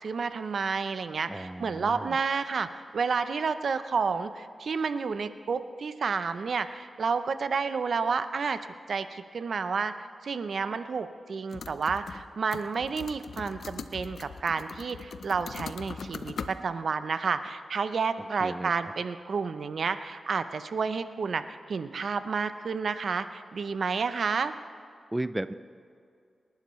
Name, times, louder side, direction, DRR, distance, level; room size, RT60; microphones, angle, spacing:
voice 1, 0.0-8.6 8.9-9.9 10.2-21.4 21.7-24.5, right 5 dB, 70° right, 11 dB, 0.6 m, -30 dB
voice 2, 1.3-2.2 18.2-18.7 25.1-25.5, right 1 dB, 15° right, 13 dB, 0.5 m, -34 dB
sound 1, 11.5-12.3 12.5-16.5, left 5 dB, 80° left, 0.6 m, -40 dB
25.0 x 11.5 x 3.1 m, 2.3 s
cardioid pair, 60°, 0 cm